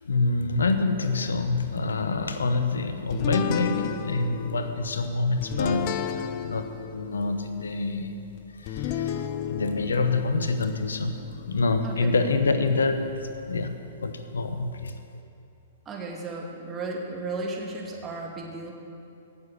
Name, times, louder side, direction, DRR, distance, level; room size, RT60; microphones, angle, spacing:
voice 1, 0.0-8.1 8.6-11.1 11.5-13.0 13.5-13.8 14.0-14.9, left 3 dB, 75° left, 8 dB, 0.9 m, -26 dB
sound 1, 3.1-13.7, left 10 dB, 40° left, 0.6 m, -35 dB
voice 2, 15.9-18.7, right 2 dB, 20° right, -1 dB, 2.4 m, -34 dB
18.0 x 7.1 x 6.7 m, 2.6 s
figure-of-eight pair, 110°, 0 cm